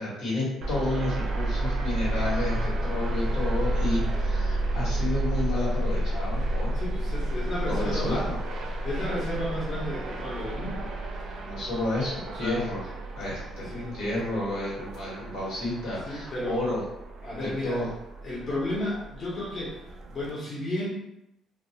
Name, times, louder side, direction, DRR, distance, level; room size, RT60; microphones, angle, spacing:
voice 1, 0.0-6.7 7.7-8.4 11.4-12.8 13.2-16.8 17.4-17.9, left 1 dB, 80° left, -6 dB, 1.1 m, -31 dB
sound 1, 0.6-20.3, right 1 dB, 55° right, 0.4 m, -31 dB
voice 2, 6.7-8.3 8.7-10.9 12.3-12.7 13.6-14.0 16.1-16.6 17.2-17.8 18.2-20.9, left 1 dB, 35° left, -6 dB, 0.7 m, -33 dB
2.2 x 2.2 x 2.7 m, 0.83 s
cardioid pair, 135°, 0 cm